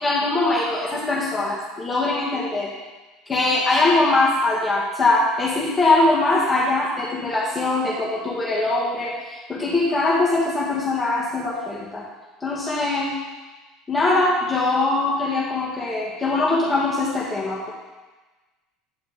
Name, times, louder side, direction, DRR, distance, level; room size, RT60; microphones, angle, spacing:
voice 1, 0.0-2.7 3.3-12.0 12.4-13.1 13.9-17.7, left 2 dB, 20° left, -5 dB, 2.0 m, -22 dB
10.0 x 4.6 x 5.2 m, 1.2 s
hypercardioid pair, 85°, 0 cm